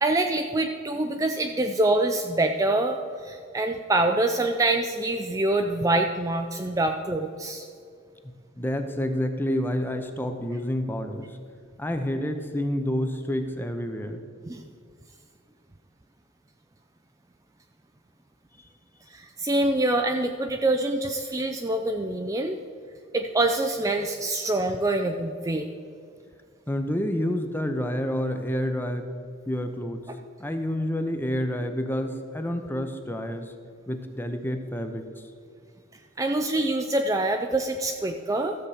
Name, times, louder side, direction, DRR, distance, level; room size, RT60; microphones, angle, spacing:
voice 1, 0.0-7.7 14.5-14.6 19.1-22.6 23.1-25.7 36.2-38.6, right 2 dB, 15° right, 5 dB, 0.4 m, -25 dB
voice 2, 8.2-11.4 11.8-14.2 26.7-29.1 29.5-30.0 30.4-33.5 33.9-35.0, equal, 10° left, 6 dB, 0.7 m, -29 dB
13.0 x 7.3 x 4.9 m, 2.2 s
head